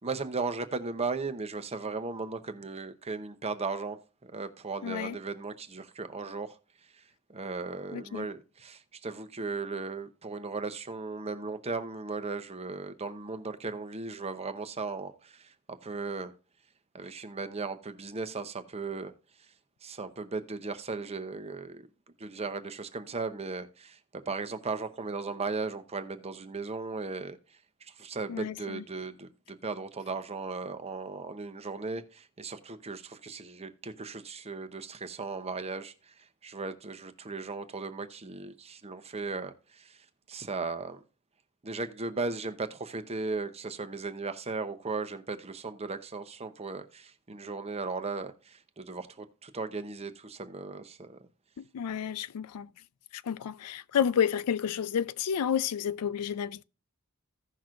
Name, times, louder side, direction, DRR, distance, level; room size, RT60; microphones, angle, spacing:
voice 1, 0.0-6.6 6.9-7.0 7.3-16.3 16.9-19.1 19.8-21.9 22.2-27.4 27.8-41.0 41.6-51.2, right 4 dB, 30° right, 0.8 m, -37 dB
voice 2, 4.8-5.2 7.9-8.3 28.3-28.8 51.6-52.7 53.1-56.6, left 8 dB, 80° left, 0.4 m, -30 dB
16.0 x 6.0 x 2.5 m
head